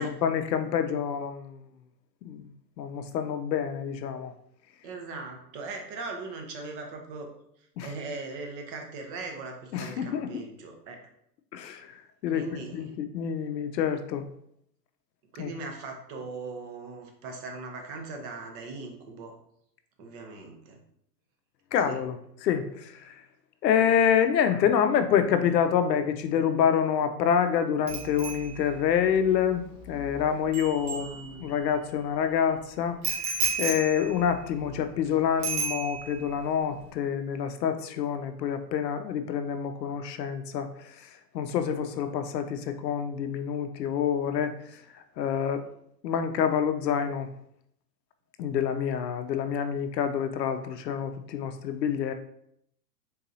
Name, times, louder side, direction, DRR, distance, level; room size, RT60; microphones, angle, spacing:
voice 1, 0.0-1.5 2.2-2.5 2.8-4.3 7.8-7.9 9.7-10.4 11.5-11.9 12.2-12.4 12.7-14.2 15.4-15.5 21.7-22.2 22.4-23.2 23.6-31.1 31.4-33.0 33.6-41.1 41.3-44.5 45.2-45.6 46.0-47.3 48.4-52.1, left 8 dB, 85° left, 8 dB, 0.5 m, -27 dB
voice 2, 4.8-7.3 7.8-11.0 12.3-12.9 15.3-19.3 20.0-20.8 21.8-22.0 30.9-31.4, right 3 dB, 35° right, 3 dB, 0.7 m, -39 dB
Bicycle bell, 27.9-31.7 33.0-35.1 35.4-36.3 36.6-36.9, right 4 dB, 55° right, 1.3 m, -34 dB
3.9 x 2.7 x 2.7 m, 0.72 s
hypercardioid pair, 120°, 49 cm